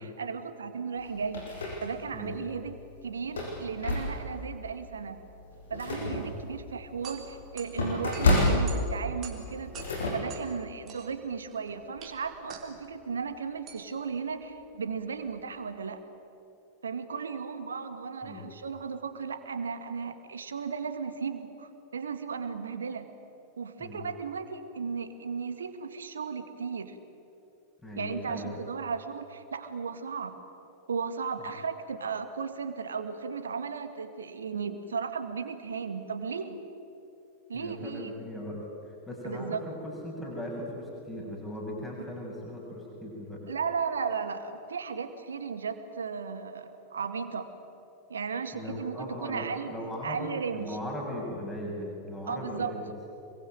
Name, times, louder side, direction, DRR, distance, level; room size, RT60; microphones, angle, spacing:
voice 1, 0.0-1.5 1.8-2.7 3.0-5.2 5.7-9.7 10.1-16.0 16.8-23.1 23.6-27.0 28.0-30.4 30.9-36.6 37.5-38.1 39.2-39.6 43.5-47.5 48.1-49.7 50.0-50.8 52.2-52.7, right 5 dB, 70° right, 9 dB, 1.9 m, -35 dB
sound 1, 1.0-2.2 2.7-2.8 3.2-4.5 4.9-5.1 5.4-10.1, left 2 dB, 70° left, 7.8 m, -30 dB
sound 2, 6.6-15.7, right 7 dB, 30° right, 4.0 m, -49 dB
voice 2, 27.8-28.6 37.5-38.6 38.9-43.5 48.5-52.9, left 1 dB, 10° left, -3 dB, 7.3 m, -38 dB
26.0 x 23.0 x 9.3 m, 2.9 s
figure-of-eight pair, 90°, 0 cm